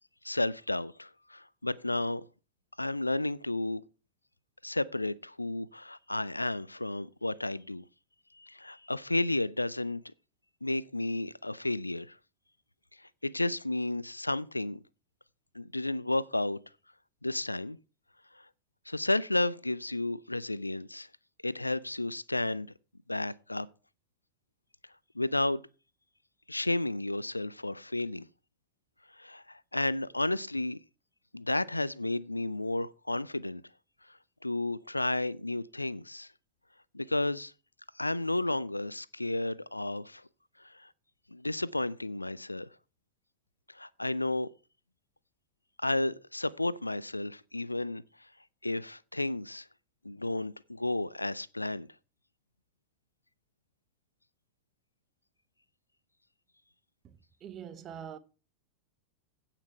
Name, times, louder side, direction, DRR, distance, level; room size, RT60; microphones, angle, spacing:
voice 1, 0.2-2.3 2.8-3.8 4.6-7.8 8.4-10.0 10.6-12.2 13.0-14.8 15.5-16.6 17.2-17.8 18.3-18.5 18.9-21.1 21.4-22.7 23.1-23.7 25.2-25.6 26.5-28.3 29.2-30.8 31.3-33.6 34.4-36.3 36.9-37.5 38.0-40.2 40.6-40.9 41.3-42.7 43.7-44.5 45.8-48.0 48.6-49.7 50.0-51.9, left 2 dB, 85° left, 0.5 m, -32 dB
voice 2, 57.0-58.2, right 8 dB, 30° right, 1.0 m, -44 dB
16.0 x 5.9 x 4.5 m
figure-of-eight pair, 90°, 0 cm